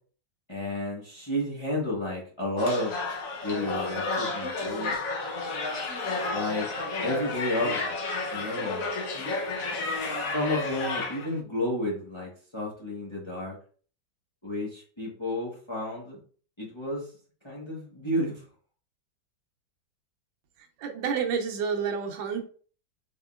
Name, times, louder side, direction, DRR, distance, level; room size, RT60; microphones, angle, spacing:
voice 1, 0.5-2.9 3.4-5.0 6.3-6.7 7.0-8.0 8.3-8.9 9.8-13.5 14.4-16.2 16.6-17.1 17.4-18.4, left 1 dB, 20° left, -4 dB, 1.0 m, -31 dB
sound 1, 2.6-11.3, left 3 dB, 60° left, 1.1 m, -31 dB
voice 2, 20.6-22.4, right 6 dB, 85° right, 3 dB, 1.5 m, -29 dB
4.5 x 3.6 x 2.4 m, 0.43 s
omnidirectional pair, 2.0 m